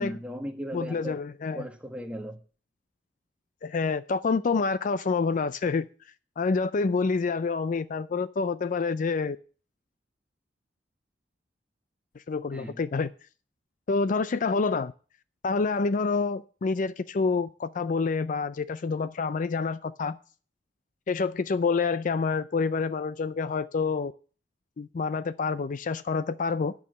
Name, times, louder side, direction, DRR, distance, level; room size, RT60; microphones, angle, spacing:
voice 1, 0.0-1.2 1.5-2.4 12.5-12.8, equal, 5° right, 1.5 m, -37 dB
voice 2, 0.7-1.7 3.6-5.9 6.4-9.4 12.3-13.1 13.9-14.9 15.4-20.2 21.1-24.1 24.8-26.7, left 4 dB, 45° left, 0.4 m, -27 dB
10.5 x 6.4 x 6.7 m
head